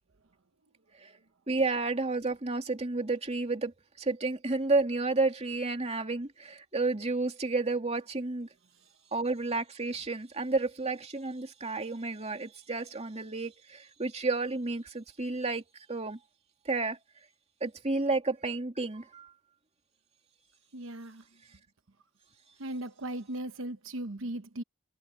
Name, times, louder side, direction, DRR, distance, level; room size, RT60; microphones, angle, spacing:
voice 1, 1.5-8.5 9.1-15.6 15.9-16.2 16.6-17.0 17.6-19.3, right 3 dB, 35° right, 2.7 m, -31 dB
voice 2, 20.7-21.3 22.6-24.6, right 1 dB, 85° right, 1.0 m, -37 dB
head